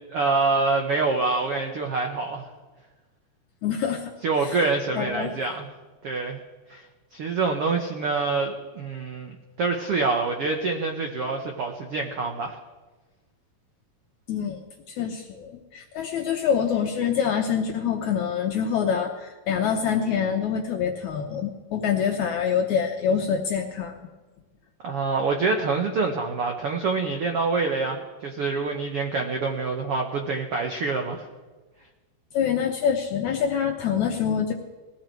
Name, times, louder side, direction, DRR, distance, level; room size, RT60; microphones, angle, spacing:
voice 1, 0.1-2.5 4.2-5.7 6.0-6.4 6.7-6.8 7.1-9.3 9.6-12.6 24.8-31.3, right 4 dB, 85° right, 3 dB, 1.2 m, -26 dB
voice 2, 3.6-4.1 4.4-4.6 5.0-5.3 14.3-24.1 32.3-34.5, left 7 dB, 70° left, 3 dB, 1.8 m, -26 dB
20.0 x 15.0 x 4.6 m, 1.3 s
omnidirectional pair, 4.4 m